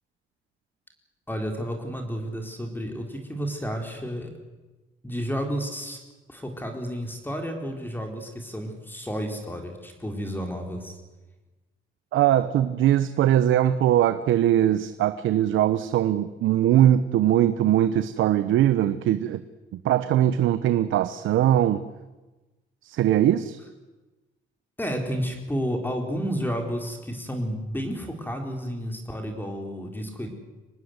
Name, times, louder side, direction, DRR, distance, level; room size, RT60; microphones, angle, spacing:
voice 1, 1.3-4.3 5.0-6.0 6.3-10.9 24.8-30.3, equal, 10° left, 3 dB, 4.4 m, -31 dB
voice 2, 12.1-19.4 19.7-21.8 22.8-23.6, right 11 dB, 85° right, 12 dB, 0.9 m, -21 dB
25.0 x 19.0 x 8.1 m, 1.1 s
cardioid pair, 90°, 20 cm